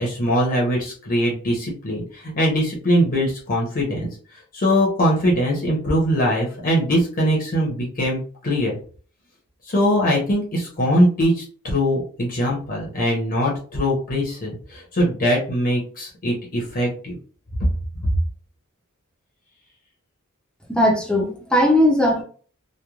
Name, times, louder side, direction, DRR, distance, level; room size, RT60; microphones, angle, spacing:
voice 1, 0.0-8.8 9.7-17.2, equal, 40° left, -2 dB, 0.7 m, -22 dB
voice 2, 20.7-22.2, left 1 dB, 5° left, 0 dB, 0.6 m, -18 dB
3.0 x 2.2 x 2.3 m, 0.42 s
head